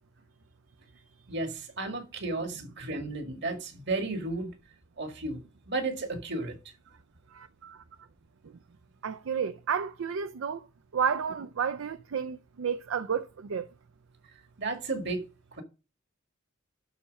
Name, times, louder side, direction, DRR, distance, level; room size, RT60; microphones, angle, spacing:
voice 1, 1.3-4.5 5.0-5.4 5.7-6.6 14.6-15.2, right 2 dB, 60° right, 1.8 m, -33 dB
voice 2, 7.3-7.8 9.0-10.6 10.9-13.7, right 7 dB, 75° right, 0.4 m, -31 dB
11.5 x 4.2 x 6.3 m
head